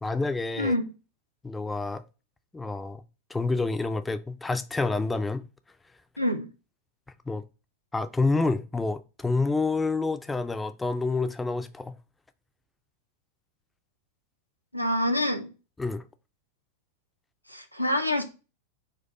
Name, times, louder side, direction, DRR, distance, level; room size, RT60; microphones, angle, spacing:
voice 1, 0.0-0.8 1.4-2.0 2.5-3.0 3.3-5.4 7.3-7.4 7.9-12.0 15.8-16.1, left 3 dB, 10° left, 0.3 m, -28 dB
voice 2, 6.2-6.5 14.7-15.5 17.5-18.2, left 1 dB, 90° left, 0.6 m, -26 dB
4.4 x 2.3 x 4.0 m
figure-of-eight pair, 90°, 0 cm